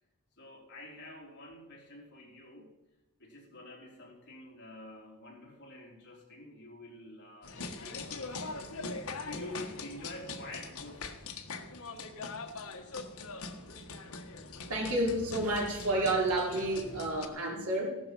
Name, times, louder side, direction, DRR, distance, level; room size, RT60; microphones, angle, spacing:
voice 1, 0.4-2.7 3.2-8.9 9.1-11.1, left 1 dB, 50° left, -1 dB, 4.4 m, -48 dB
sound 1, 7.4-17.3, left 3 dB, 70° left, 1.6 m, -42 dB
voice 2, 14.7-18.0, right 1 dB, 75° right, -2 dB, 4.7 m, -30 dB
16.0 x 12.5 x 5.5 m, 0.98 s
head